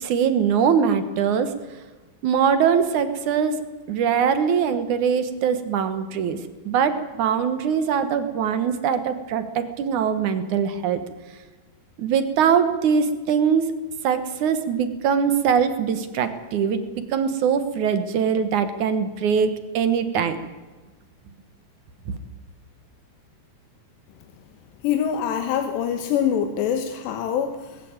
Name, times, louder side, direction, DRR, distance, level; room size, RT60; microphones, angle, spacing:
voice 1, 0.0-1.5 2.2-3.6 3.9-6.4 6.7-11.0 12.0-13.7 14.0-20.4 22.1-22.2, right 7 dB, 65° right, 10 dB, 2.1 m, -22 dB
voice 2, 24.8-27.8, left 8 dB, 85° left, 6 dB, 3.4 m, -24 dB
19.5 x 16.0 x 8.8 m, 1.3 s
omnidirectional pair, 4.8 m